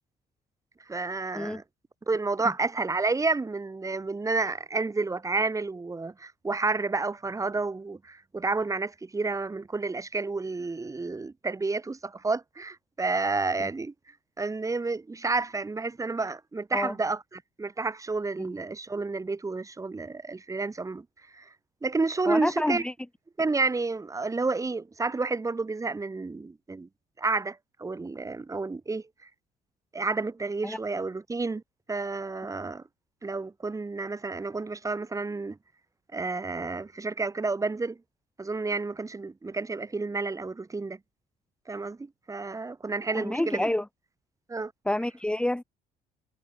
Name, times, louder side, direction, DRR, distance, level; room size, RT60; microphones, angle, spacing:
voice 1, 0.9-1.6 2.1-13.9 14.4-21.0 21.3-21.4 21.8-22.8 23.4-26.9 27.2-29.0 29.9-31.6 31.9-32.8 33.2-35.6 36.1-38.0 38.4-41.0 41.7-43.7 44.5-44.7, right 3 dB, 20° right, 3.0 m, -30 dB
voice 2, 22.3-22.9 30.6-30.8 43.1-43.9 44.8-45.6, left 1 dB, 5° left, 1.5 m, -28 dB
cardioid pair, 110°, 17 cm